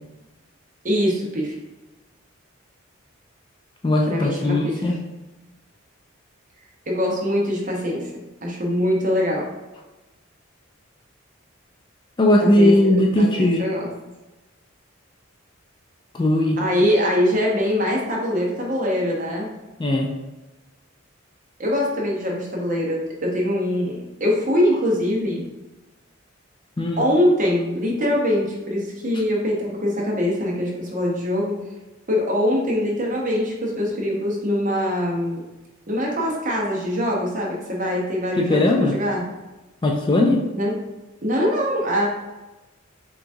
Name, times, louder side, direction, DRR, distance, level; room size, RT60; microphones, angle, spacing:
voice 1, 0.8-1.6 4.1-4.8 6.9-8.1 8.4-9.5 12.4-13.9 16.6-19.5 21.6-25.4 27.0-31.6 32.1-35.4 35.9-39.2 40.5-40.7 41.2-42.1, equal, 40° right, -2 dB, 0.9 m, -23 dB
voice 2, 3.8-5.0 12.2-13.6 16.1-16.6 19.8-20.1 26.8-27.0 38.4-39.0 39.8-40.4, left 1 dB, 20° left, 0 dB, 0.3 m, -18 dB
5.7 x 2.4 x 2.7 m, 1.1 s
head